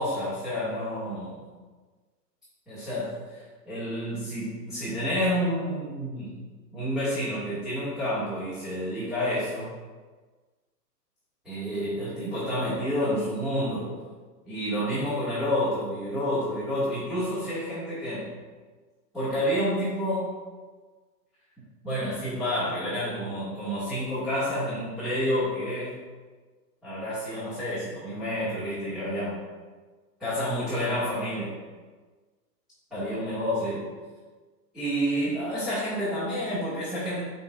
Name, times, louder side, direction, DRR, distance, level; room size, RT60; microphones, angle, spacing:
voice 1, 0.0-1.5 2.7-6.4 6.7-9.7 11.4-14.0 14.4-18.3 19.1-20.3 21.8-25.9 26.8-29.4 30.2-31.6 32.9-33.9 34.7-37.2, equal, ahead, -15 dB, 1.8 m, -29 dB
10.0 x 4.0 x 2.4 m, 1.4 s
hypercardioid pair, 145°, 49 cm